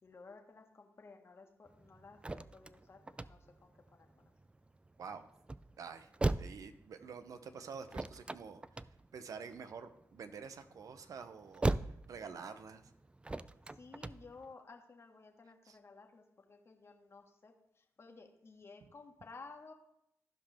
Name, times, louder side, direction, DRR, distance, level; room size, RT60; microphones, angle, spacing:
voice 1, 0.0-4.3 13.7-19.7, left 4 dB, 45° left, 3 dB, 1.6 m, -55 dB
sound 1, 1.7-14.5, right 2 dB, 15° right, 0.4 m, -40 dB
voice 2, 5.0-5.3 5.8-6.1 6.4-8.8 9.1-12.9 15.6-15.8, right 6 dB, 65° right, 10 dB, 0.9 m, -48 dB
14.5 x 5.2 x 3.5 m, 0.76 s
supercardioid pair, 55°, 6 cm